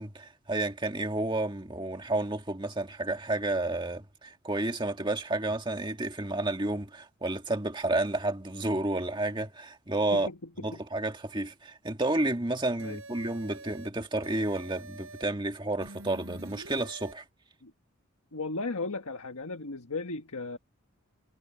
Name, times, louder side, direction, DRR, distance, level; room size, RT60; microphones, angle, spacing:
voice 1, 0.0-10.3 10.6-17.2, right 2 dB, 20° right, 1.9 m, -31 dB
voice 2, 10.1-10.8 12.8-13.0 17.6-17.7 18.3-20.6, left 3 dB, 85° left, 1.5 m, -36 dB
sound 1, 12.8-13.9 14.2-15.2 15.8-17.1, right 2 dB, 65° right, 7.2 m, -46 dB
head